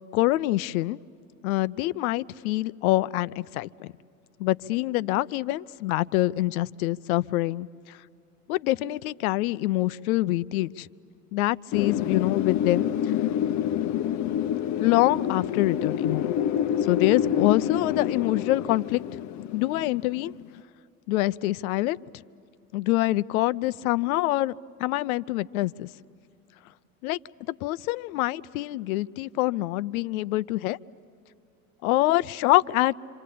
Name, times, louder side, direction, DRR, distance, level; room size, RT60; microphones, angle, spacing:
voice 1, 0.1-1.0 1.4-3.9 4.4-8.0 8.5-10.9 11.3-13.1 14.8-16.3 16.8-19.2 19.5-20.3 21.1-22.0 22.7-25.9 27.0-27.2 27.5-30.8 31.8-32.9, left 17 dB, 75° left, 17 dB, 0.6 m, -25 dB
Wind, 11.7-20.4, left 9 dB, 40° left, 0.7 m, -27 dB
27.0 x 26.0 x 8.5 m, 2.5 s
hypercardioid pair, 85°, 43 cm